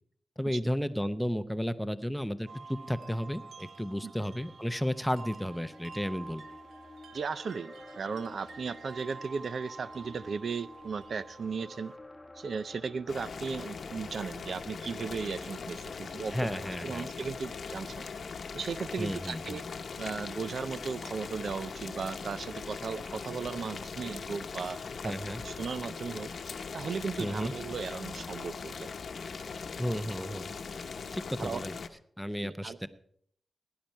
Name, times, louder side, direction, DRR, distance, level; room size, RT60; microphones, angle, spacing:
voice 1, 0.4-6.4 16.3-17.1 19.0-19.6 25.0-25.4 27.2-27.5 29.8-30.5 31.1-31.7 32.2-32.9, equal, ahead, 12 dB, 0.7 m, -33 dB
sound 1, 2.5-12.0, right 3 dB, 90° right, 0.9 m, -49 dB
sound 2, 5.6-14.9, left 2 dB, 15° left, 1.1 m, -52 dB
voice 2, 7.1-11.9 12.3-16.5 16.8-18.1 18.5-19.6 20.0-24.8 25.0-28.9 31.4-31.6 32.4-32.8, right 5 dB, 70° right, 15 dB, 0.5 m, -36 dB
Boiling, 13.1-31.9, left 5 dB, 65° left, 0.8 m, -40 dB
17.0 x 10.5 x 4.6 m, 0.66 s
wide cardioid pair, 95°, 0 cm